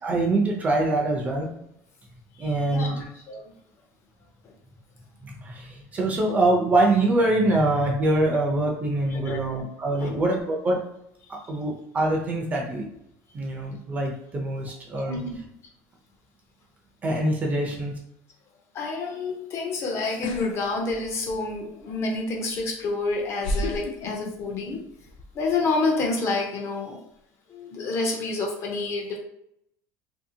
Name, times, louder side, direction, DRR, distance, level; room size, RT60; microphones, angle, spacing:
voice 1, 0.0-1.5 2.4-3.0 5.2-10.8 11.3-12.9 13.3-15.2 17.0-17.9, right 2 dB, 20° right, 1 dB, 0.4 m, -24 dB
voice 2, 2.4-3.4 9.1-9.4 10.0-10.2 15.1-15.4 18.7-24.8 25.3-27.0 27.5-29.2, left 3 dB, 40° left, 1 dB, 0.6 m, -28 dB
sound 1, 20.2-20.5 20.9-21.5 22.6-22.7 23.4-24.8 25.1-25.5, left 2 dB, 80° left, 0.5 m, -30 dB
2.8 x 2.7 x 2.7 m, 0.76 s
cardioid pair, 165°, 7 cm